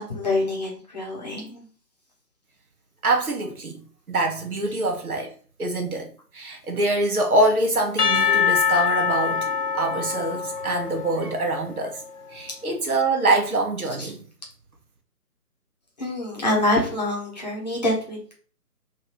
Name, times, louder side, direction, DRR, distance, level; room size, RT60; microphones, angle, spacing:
voice 1, 0.0-1.6 14.0-14.1 16.0-18.4, left 1 dB, 25° left, 0.9 m, -26 dB
voice 2, 3.0-3.8 4.1-5.3 5.6-9.5 9.7-12.0 12.3-14.2, right 2 dB, 65° right, 1.1 m, -24 dB
Percussion / Church bell, 8.0-12.2, left 6 dB, 70° left, 0.8 m, -24 dB
3.1 x 2.7 x 4.1 m
figure-of-eight pair, 155°, 48 cm